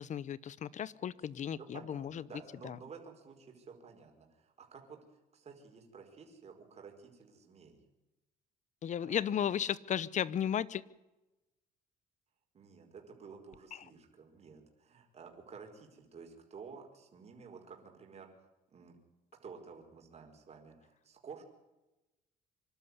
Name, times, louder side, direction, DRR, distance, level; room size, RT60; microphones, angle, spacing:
voice 1, 0.0-2.2 2.6-2.8 8.8-10.8 13.8-13.9, left 9 dB, 45° left, 20 dB, 0.9 m, -35 dB
voice 2, 1.6-7.8 9.0-9.2 12.5-18.3 18.7-19.0 19.4-21.4, right 5 dB, 40° right, 2 dB, 4.9 m, -52 dB
25.5 x 12.0 x 9.7 m, 1.0 s
cardioid pair, 110°, 17 cm